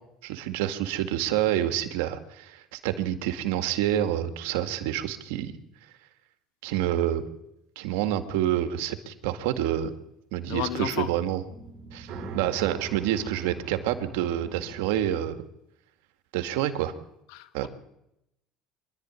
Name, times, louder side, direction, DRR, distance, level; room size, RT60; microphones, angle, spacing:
voice 1, 0.2-5.6 6.6-7.2 7.8-9.9 10.3-11.4 11.9-15.4 16.3-16.9 17.5-17.7, right 12 dB, 85° right, 9 dB, 1.9 m, -28 dB
voice 2, 10.5-11.1 17.3-17.7, left 11 dB, 85° left, 10 dB, 1.9 m, -32 dB
sound 1, 11.5-15.1, right 5 dB, 55° right, 3.8 m, -41 dB
24.5 x 12.0 x 9.7 m, 0.84 s
supercardioid pair, 115°, 0 cm